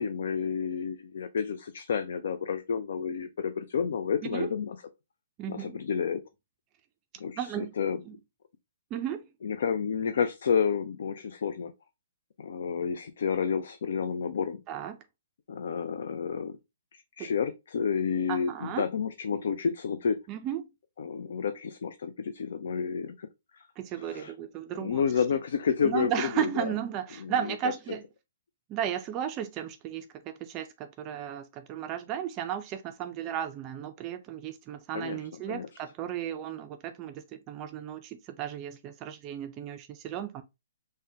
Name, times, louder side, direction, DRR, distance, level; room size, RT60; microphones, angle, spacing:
voice 1, 0.0-4.8 5.5-6.2 7.2-7.4 7.8-8.0 9.4-11.7 12.4-14.6 15.5-16.6 17.2-20.2 21.0-23.3 23.5-23.7 24.0-24.3 24.7-26.6 27.2-27.3 34.9-35.2 35.5-35.7, left 6 dB, 65° left, 0.3 m, -30 dB
voice 2, 5.4-5.8 7.4-7.7 8.1-8.2 8.9-9.2 14.7-15.0 17.2-17.3 18.3-18.9 20.3-20.6 23.8-25.0 25.8-28.0 28.7-40.4, right 10 dB, 30° right, 0.3 m, -34 dB
3.4 x 2.1 x 2.6 m
hypercardioid pair, 135°, 0 cm